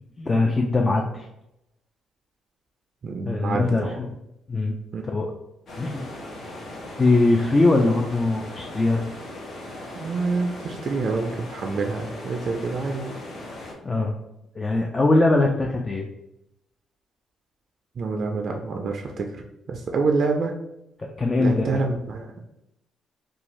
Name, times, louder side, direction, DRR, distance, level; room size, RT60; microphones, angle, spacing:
voice 1, 0.2-1.3 3.2-4.1 4.5-4.7 5.1-5.3 5.8-6.1 7.0-9.0 13.8-14.1 14.6-16.1 21.2-21.8, left 2 dB, 30° left, 1 dB, 0.3 m, -21 dB
voice 2, 3.0-4.1 4.9-5.0 9.9-13.1 18.0-19.4 19.7-20.5 21.4-22.3, right 4 dB, 55° right, 2 dB, 0.3 m, -27 dB
sound 1, 5.7-13.7, left 1 dB, 55° left, 0.7 m, -38 dB
2.5 x 2.3 x 3.0 m, 0.87 s
cardioid pair, 90°, 0 cm